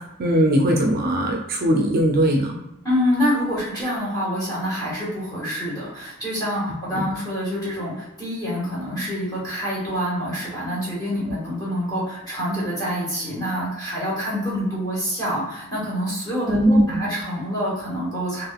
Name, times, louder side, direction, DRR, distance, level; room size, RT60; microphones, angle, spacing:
voice 1, 0.2-2.6 6.9-7.0 16.5-17.0, right 1 dB, 45° right, 0 dB, 0.4 m, -19 dB
voice 2, 2.8-18.5, equal, 20° left, -8 dB, 1.5 m, -26 dB
3.2 x 2.5 x 2.3 m, 0.90 s
head